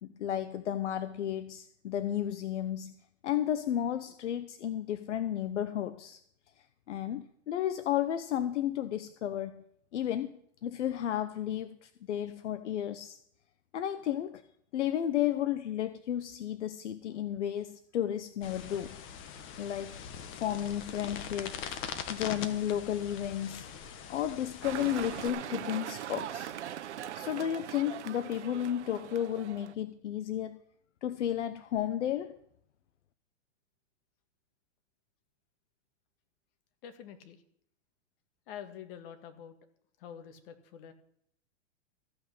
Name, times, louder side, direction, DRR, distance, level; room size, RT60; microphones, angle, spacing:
voice 1, 0.0-2.9 3.2-6.2 6.9-9.6 9.9-13.2 13.7-14.4 14.7-19.0 19.6-20.0 20.3-21.8 22.1-23.7 24.1-26.5 27.1-30.6 31.0-32.4, left 11 dB, 80° left, 0.8 m, -33 dB
sound 1, 18.4-25.3, left 8 dB, 35° left, 1.3 m, -42 dB
sound 2, 24.6-29.7, right 11 dB, 75° right, 0.9 m, -40 dB
voice 2, 36.8-37.4 38.5-39.6 40.0-40.9, left 9 dB, 50° left, 2.0 m, -46 dB
14.5 x 6.1 x 8.5 m
hypercardioid pair, 120°, 35 cm